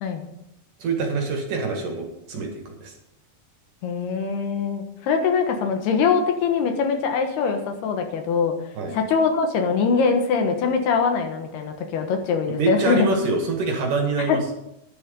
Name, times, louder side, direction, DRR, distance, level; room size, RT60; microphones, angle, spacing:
voice 1, 0.8-2.9 8.8-9.0 12.6-14.4, right 4 dB, 55° right, 2 dB, 3.0 m, -25 dB
voice 2, 3.8-8.5 8.9-13.1 14.3-14.4, left 5 dB, 75° left, 5 dB, 3.2 m, -22 dB
11.0 x 10.5 x 5.3 m, 0.82 s
omnidirectional pair, 4.9 m